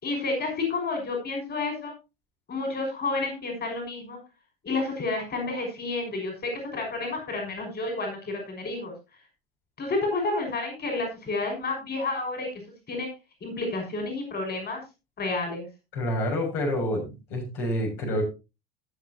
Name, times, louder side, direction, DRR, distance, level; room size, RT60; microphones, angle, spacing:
voice 1, 0.0-1.9 2.5-4.2 4.6-8.9 9.8-12.5 12.9-13.1 13.4-14.8 15.2-15.7, left 3 dB, 30° left, 4 dB, 5.8 m, -30 dB
voice 2, 15.9-18.2, left 1 dB, 65° left, 0 dB, 6.6 m, -28 dB
20.0 x 6.9 x 2.8 m, 0.27 s
hypercardioid pair, 75°, 30 cm